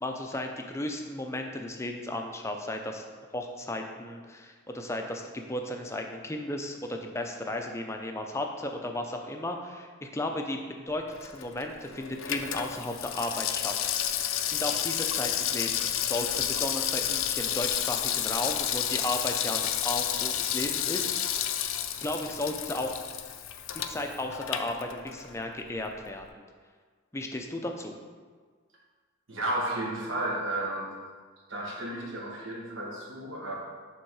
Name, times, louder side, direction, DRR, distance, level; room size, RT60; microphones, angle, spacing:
voice 1, 0.0-3.0 3.3-10.6 10.9-14.0 14.5-21.6 22.0-22.9 23.7-26.4 27.1-28.0, left 1 dB, 15° left, 3 dB, 0.5 m, -34 dB
Water tap faucet / Sink (filling or washing), 11.1-25.4 25.7-25.8, left 10 dB, 75° left, 0.5 m, -31 dB
voice 2, 29.3-30.9 31.5-33.5, right 1 dB, 65° right, -3 dB, 1.6 m, -33 dB
9.1 x 3.6 x 4.7 m, 1.5 s
head